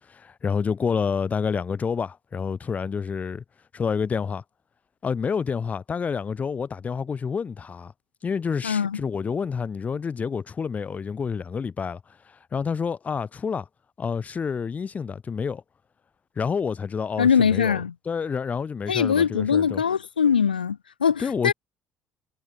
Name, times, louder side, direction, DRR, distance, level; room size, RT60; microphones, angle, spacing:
voice 1, 0.1-3.4 3.7-4.4 5.0-7.9 8.2-13.7 14.0-15.6 16.4-17.8 18.1-19.8 21.2-21.5, left 6 dB, 30° left, 0.8 m, -28 dB
voice 2, 8.6-9.0 17.2-17.9 18.9-21.5, left 7 dB, 85° left, 0.7 m, -22 dB
figure-of-eight pair, 55°, 5 cm